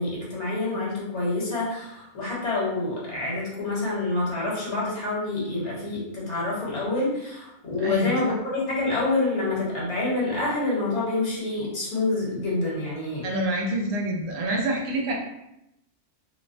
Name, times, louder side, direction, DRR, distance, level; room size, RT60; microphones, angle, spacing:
voice 1, 0.0-13.3, left 2 dB, 65° left, -5 dB, 1.2 m, -27 dB
voice 2, 7.8-8.1 13.2-15.1, right 1 dB, 90° right, -1 dB, 1.0 m, -27 dB
2.7 x 2.1 x 2.5 m, 0.83 s
omnidirectional pair, 1.3 m